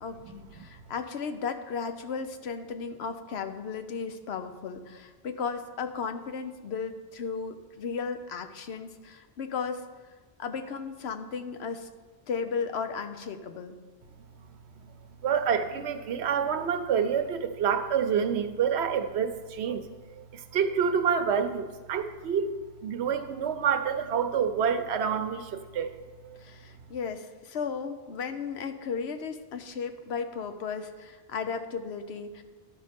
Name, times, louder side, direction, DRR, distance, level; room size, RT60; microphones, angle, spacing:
voice 1, 0.0-9.8 10.4-11.9 12.3-13.8 26.4-32.4, left 5 dB, 75° left, 8 dB, 1.0 m, -35 dB
voice 2, 15.2-19.8 20.1-22.5 22.8-25.9 26.2-26.4, right 7 dB, 80° right, 8 dB, 1.0 m, -27 dB
12.0 x 5.2 x 5.2 m, 1.4 s
omnidirectional pair, 1.1 m